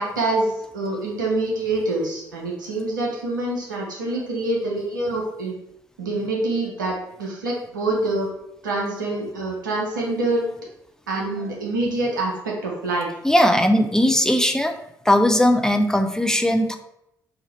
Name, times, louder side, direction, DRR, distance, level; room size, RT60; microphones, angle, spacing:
voice 1, 0.0-5.5 6.0-8.3 8.6-10.5 11.1-13.1, right 2 dB, 85° right, -2 dB, 0.8 m, -25 dB
voice 2, 13.2-14.7 15.1-16.8, left 1 dB, 5° left, 5 dB, 0.5 m, -18 dB
3.8 x 2.8 x 4.1 m, 0.80 s
figure-of-eight pair, 45°, 10 cm